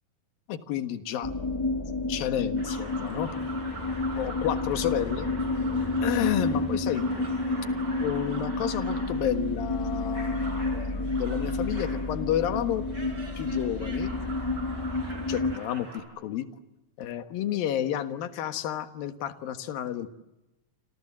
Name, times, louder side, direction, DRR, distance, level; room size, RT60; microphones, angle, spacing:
voice 1, 0.5-1.3 2.1-3.4 4.2-5.3 6.0-7.1 8.0-12.8 13.4-14.1 15.3-16.5 17.0-20.1, left 11 dB, 80° left, 10 dB, 3.2 m, -31 dB
sound 1, 1.2-15.6, left 2 dB, 10° left, 1.3 m, -30 dB
sound 2, 2.6-16.0, right 2 dB, 25° right, 7.1 m, -44 dB
29.0 x 27.0 x 7.5 m, 0.99 s
omnidirectional pair, 4.1 m